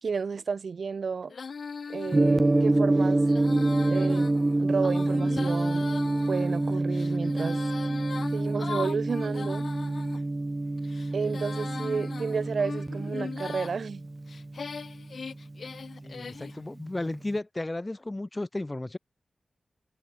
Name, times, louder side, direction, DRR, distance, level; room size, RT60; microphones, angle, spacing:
voice 1, 0.0-1.3 1.9-3.2 3.9-4.3 4.6-5.9 6.3-7.6 8.3-9.7 11.1-14.0, right 5 dB, 70° right, 2.9 m, -32 dB
Female singing, 1.3-10.2 10.8-13.8 14.3-16.6, left 5 dB, 70° left, 2.1 m, -40 dB
Gong, 2.1-16.3, right 2 dB, 30° right, 0.5 m, -27 dB
voice 2, 16.0-19.0, left 2 dB, 25° left, 1.3 m, -34 dB
cardioid pair, 55°, 0 cm